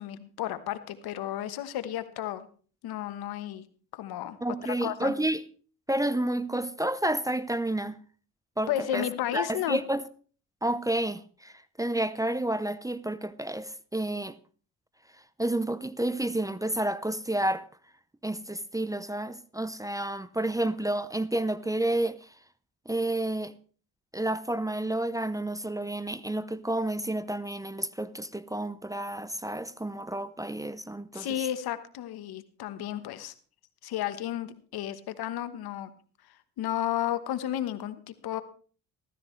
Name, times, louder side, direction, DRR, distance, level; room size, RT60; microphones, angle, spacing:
voice 1, 0.0-2.5 2.8-3.6 3.9-4.4 4.6-5.1 8.7-9.8 31.1-33.3 33.8-35.9 36.6-38.4, left 11 dB, 75° left, 1.3 m, -33 dB
voice 2, 4.4-5.4 5.9-8.0 8.6-9.1 9.3-10.0 10.6-14.4 15.4-17.7 18.2-22.2 22.9-23.5 24.1-31.3, right 1 dB, 10° right, 0.6 m, -30 dB
15.0 x 14.0 x 3.2 m
cardioid pair, 75°, 37 cm